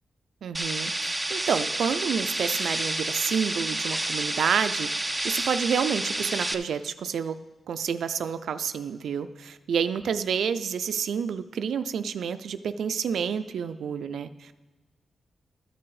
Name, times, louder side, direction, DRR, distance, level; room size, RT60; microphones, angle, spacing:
voice 1, 0.4-4.9 5.2-7.4 7.7-14.6, right 7 dB, 80° right, 11 dB, 0.4 m, -29 dB
sound 1, 0.5-6.5, right 1 dB, 10° right, 0.5 m, -29 dB
13.5 x 5.9 x 4.8 m, 1.3 s
wide cardioid pair, 155°, 0 cm